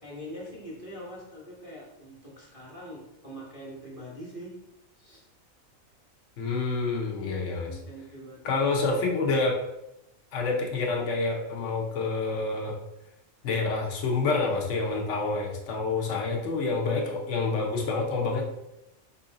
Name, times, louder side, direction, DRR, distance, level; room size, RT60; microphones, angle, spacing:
voice 1, 0.0-4.6 5.0-5.3 7.1-8.5 16.0-16.2, equal, 25° left, -5 dB, 1.2 m, -43 dB
voice 2, 6.4-7.7 8.4-9.6 10.3-12.8 13.4-18.5, left 3 dB, 65° left, 0 dB, 1.2 m, -28 dB
4.6 x 2.8 x 3.8 m, 0.89 s
omnidirectional pair, 1.4 m